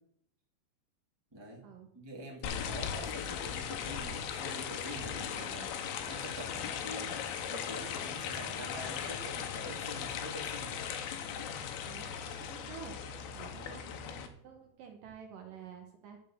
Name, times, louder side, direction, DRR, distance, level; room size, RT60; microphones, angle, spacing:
voice 1, 1.3-1.6 1.9-7.2 7.5-10.8 13.5-13.8, right 1 dB, 15° right, -2 dB, 0.8 m, -46 dB
sound 1, 2.4-14.3, left 8 dB, 75° left, 2.6 m, -38 dB
voice 2, 11.8-13.0 13.3-16.2, right 7 dB, 65° right, 3 dB, 2.3 m, -50 dB
12.5 x 4.6 x 7.1 m, 0.73 s
omnidirectional pair, 4.9 m